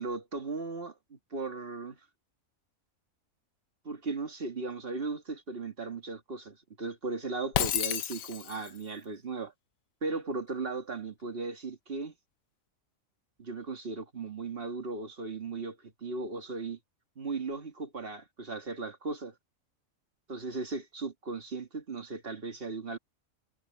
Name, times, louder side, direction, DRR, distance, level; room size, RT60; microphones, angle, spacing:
voice 1, 0.0-2.0 3.9-9.5 10.0-12.1 13.4-16.8 17.2-19.3 20.3-23.0, right 3 dB, 45° right, 2.2 m, -37 dB
Shatter, 7.5-8.8, left 11 dB, 80° left, 1.2 m, -31 dB
omnidirectional pair, 1.4 m